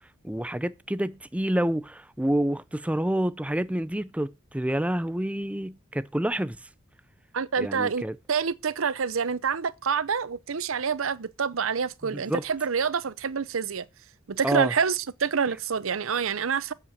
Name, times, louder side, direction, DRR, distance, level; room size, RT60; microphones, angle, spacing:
voice 1, 0.2-6.6 7.6-8.2 12.0-12.4 14.4-14.7, right 1 dB, 5° right, 0.5 m, -28 dB
voice 2, 7.3-13.9 14.3-16.7, right 6 dB, 90° right, 0.7 m, -27 dB
8.5 x 8.0 x 7.4 m
head